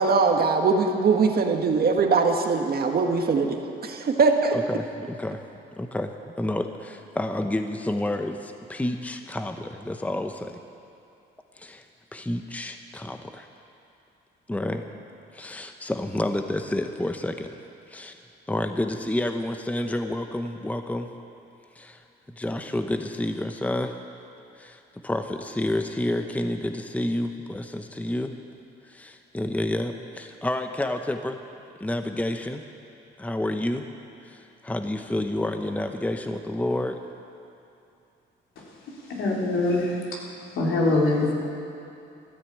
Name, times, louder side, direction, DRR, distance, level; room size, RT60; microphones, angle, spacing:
voice 1, 0.0-4.6, right 4 dB, 50° right, 3 dB, 1.7 m, -22 dB
voice 2, 4.5-5.5 5.8-10.6 11.6-11.8 12.1-13.5 14.5-14.8 15.3-17.5 17.9-18.2 18.5-21.1 21.7-22.0 22.4-24.0 24.5-28.3 28.8-31.4 31.8-32.6 33.2-33.9 34.2-37.0, left 1 dB, 5° left, 6 dB, 0.9 m, -29 dB
voice 3, 39.1-39.9 40.5-41.3, left 2 dB, 80° left, -3 dB, 3.4 m, -23 dB
13.5 x 12.5 x 8.5 m, 2.7 s
cardioid pair, 90°, 20 cm